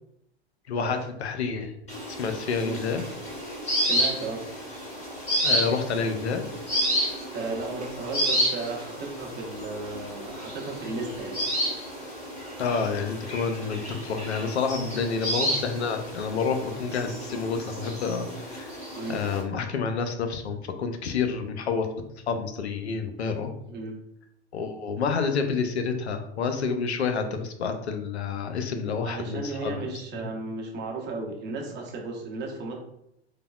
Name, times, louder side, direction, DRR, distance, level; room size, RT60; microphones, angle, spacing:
voice 1, 0.7-1.7 2.1-3.0 5.4-6.4 12.6-21.9 22.3-23.5 24.5-30.3, left 5 dB, 90° left, 6 dB, 0.5 m, -29 dB
sound 1, 1.9-19.4, equal, 20° left, 1.3 m, -31 dB
voice 2, 3.8-4.4 7.3-11.4 19.0-19.2 23.7-24.0 29.0-32.7, right 3 dB, 35° right, 0 dB, 0.8 m, -34 dB
3.2 x 2.1 x 2.3 m, 0.78 s
hypercardioid pair, 90°, 32 cm